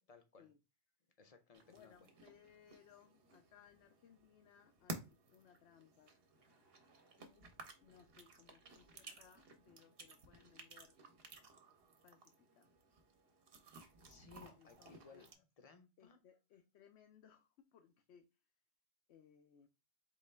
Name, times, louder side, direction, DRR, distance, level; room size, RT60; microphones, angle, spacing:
voice 1, 0.1-0.5 1.2-2.1 14.0-15.3 15.6-16.2, left 5 dB, 40° left, 0.7 m, -61 dB
sound 1, 1.5-15.3, right 3 dB, 60° right, 1.0 m, -56 dB
voice 2, 1.7-6.2 7.2-7.6 7.8-11.0 12.0-12.7 14.6-15.3 16.0-18.3 19.1-19.7, left 8 dB, 75° left, 0.9 m, -65 dB
4.3 x 3.1 x 3.2 m
omnidirectional pair, 1.2 m